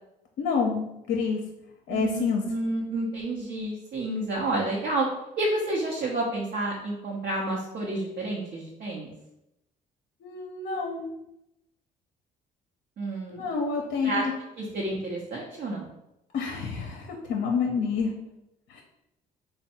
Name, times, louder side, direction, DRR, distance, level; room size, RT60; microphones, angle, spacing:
voice 1, 0.4-1.4 1.9-2.4 10.2-11.1 13.3-14.3 16.3-18.1 18.7-18.8, left 5 dB, 70° left, 1 dB, 0.6 m, -28 dB
voice 2, 1.9-5.1 5.4-9.1 13.0-13.5 14.0-14.2 14.6-15.9, right 2 dB, 55° right, -3 dB, 0.8 m, -30 dB
3.4 x 2.2 x 4.1 m, 0.87 s
supercardioid pair, 60°, 19 cm